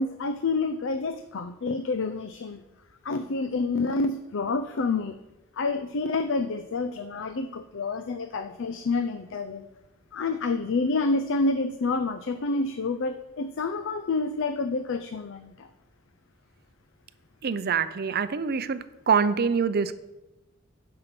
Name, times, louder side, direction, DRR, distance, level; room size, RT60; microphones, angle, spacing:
voice 1, 0.0-2.6 3.0-5.2 5.6-9.7 10.1-15.7, left 3 dB, 60° left, 9 dB, 0.5 m, -28 dB
voice 2, 17.4-19.9, right 6 dB, 50° right, 13 dB, 0.6 m, -25 dB
9.9 x 5.6 x 6.9 m, 1.0 s
head